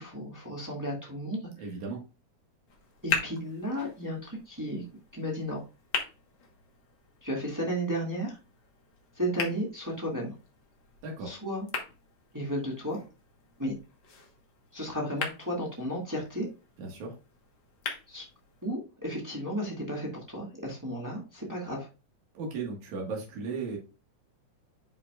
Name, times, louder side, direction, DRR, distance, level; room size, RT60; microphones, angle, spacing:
voice 1, 0.0-1.7 3.0-4.8 5.1-5.6 7.2-8.4 9.1-10.3 11.2-11.6 12.3-13.0 13.6-13.7 14.7-16.5 18.1-18.2 18.6-21.9, equal, 10° right, -2 dB, 1.6 m, -33 dB
voice 2, 1.6-2.0 11.0-11.4 16.8-17.1 22.3-23.8, right 4 dB, 75° right, 0 dB, 3.1 m, -36 dB
tongue clicks, 2.7-18.7, left 5 dB, 50° left, 1.6 m, -40 dB
10.0 x 5.0 x 2.4 m, 0.30 s
omnidirectional pair, 3.3 m